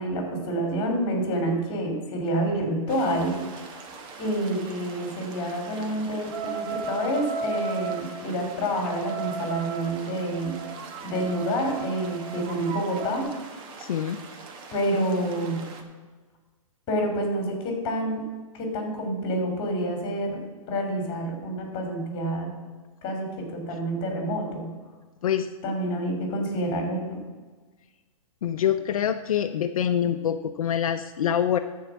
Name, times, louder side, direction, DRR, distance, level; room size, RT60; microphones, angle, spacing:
voice 1, 0.0-3.7 4.2-13.4 14.7-15.6 16.9-18.3 18.5-22.5 23.0-24.7 25.6-27.2, right 1 dB, 30° left, 3 dB, 3.1 m, -28 dB
sound 1, 2.9-15.8, right 4 dB, 25° right, 1.1 m, -44 dB
sound 2, 6.3-8.1 8.7-13.2, right 6 dB, 45° right, 1.3 m, -34 dB
voice 2, 13.8-14.2 25.2-25.5 28.4-31.6, left 9 dB, 80° left, 7 dB, 0.6 m, -25 dB
13.5 x 4.7 x 7.1 m, 1.4 s
hypercardioid pair, 150°, 18 cm